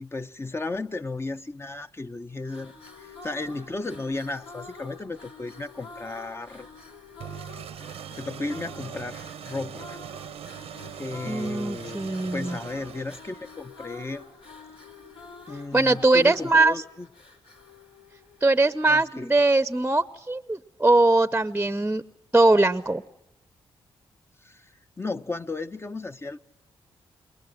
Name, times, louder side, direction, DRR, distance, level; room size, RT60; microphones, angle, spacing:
voice 1, 0.0-2.7 3.0-6.7 8.1-10.0 11.0-14.2 15.5-17.1 18.9-19.3 24.4-26.4, left 3 dB, 25° left, 0.9 m, -34 dB
sound 1, 2.4-18.8, left 3 dB, 75° left, 4.4 m, -47 dB
sound 2, 7.2-13.7, right 10 dB, 85° right, 0.9 m, -41 dB
voice 2, 11.3-12.6 15.7-16.7 18.4-22.0 22.3-23.0, right 2 dB, 15° right, 0.8 m, -21 dB
28.0 x 22.0 x 7.8 m
cardioid pair, 60°, 10 cm